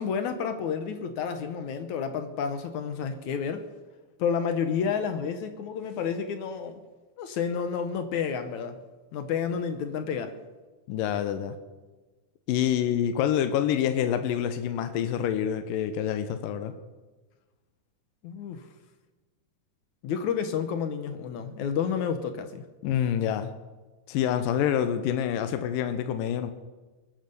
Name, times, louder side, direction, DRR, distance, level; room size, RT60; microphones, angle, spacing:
voice 1, 0.0-3.7 4.2-6.8 7.2-8.8 9.1-10.3 18.2-18.7 20.0-22.6, left 7 dB, 70° left, 9 dB, 2.3 m, -30 dB
voice 2, 10.9-11.6 12.5-16.7 22.8-23.5 24.1-26.5, left 9 dB, 85° left, 9 dB, 2.6 m, -27 dB
22.5 x 9.4 x 6.7 m, 1.2 s
omnidirectional pair, 3.8 m